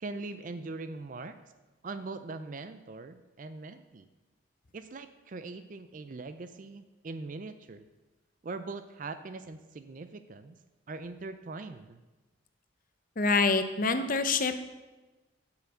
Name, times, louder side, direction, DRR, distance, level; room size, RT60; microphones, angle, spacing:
voice 1, 0.0-1.4 1.8-4.1 4.7-7.9 8.4-10.6 10.9-12.0, right 3 dB, 40° right, 11 dB, 0.4 m, -41 dB
voice 2, 13.2-14.6, left 4 dB, 40° left, 9 dB, 0.7 m, -26 dB
7.8 x 5.8 x 7.8 m, 1.2 s
head